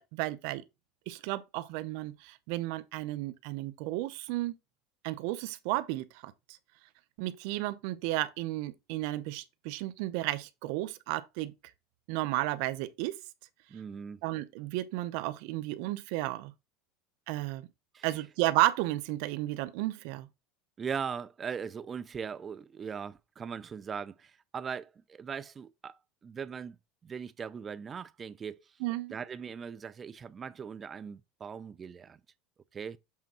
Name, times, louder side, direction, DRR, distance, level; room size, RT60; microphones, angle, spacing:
voice 1, 0.1-0.6 1.1-4.5 5.0-6.3 7.2-11.5 12.1-13.1 14.2-16.5 17.3-17.7 18.0-20.3 28.8-29.2, right 17 dB, 70° right, 0.8 m, -33 dB
voice 2, 13.7-14.2 17.9-18.1 20.8-25.9 26.2-26.8 27.0-28.6 29.1-32.2 32.7-33.0, right 6 dB, 25° right, 0.5 m, -39 dB
7.6 x 3.5 x 4.2 m
supercardioid pair, 125°, 0 cm